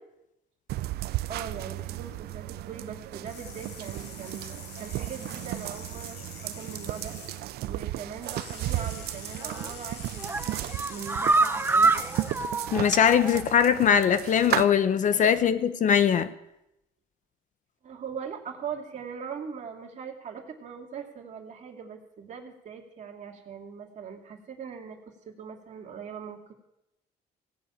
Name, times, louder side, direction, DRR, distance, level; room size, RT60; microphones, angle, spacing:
sound 1, 0.7-14.6, right 16 dB, 70° right, 0.5 m, -35 dB
voice 1, 1.3-7.1 7.6-12.4 15.3-15.4 17.8-26.5, right 7 dB, 45° right, 2.3 m, -41 dB
sound 2, 3.3-7.5 8.2-12.5, left 5 dB, 85° left, 2.6 m, -45 dB
sound 3, 9.4-9.8 10.2-13.6 13.9-14.0 14.3-14.4, right 3 dB, 15° right, 0.6 m, -26 dB
voice 2, 12.7-16.3, left 8 dB, 50° left, 0.8 m, -21 dB
17.0 x 6.6 x 8.7 m
cardioid pair, 110°, 17 cm